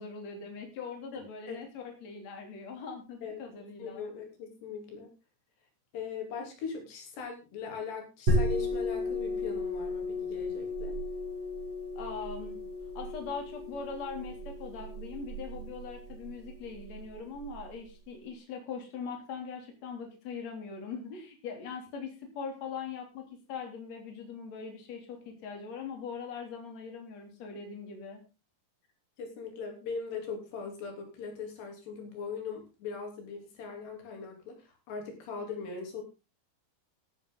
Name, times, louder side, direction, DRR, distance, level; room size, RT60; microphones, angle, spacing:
voice 1, 0.0-4.1 12.0-12.6 12.9-28.2, left 5 dB, 45° left, 3 dB, 4.1 m, -41 dB
voice 2, 1.1-1.6 3.2-3.4 3.8-5.1 5.9-11.0 29.2-36.0, left 5 dB, 90° left, 2 dB, 5.6 m, -40 dB
sound 1, 8.3-17.6, left 1 dB, 40° right, 6.0 m, -34 dB
13.0 x 12.5 x 4.0 m, 0.30 s
omnidirectional pair, 4.7 m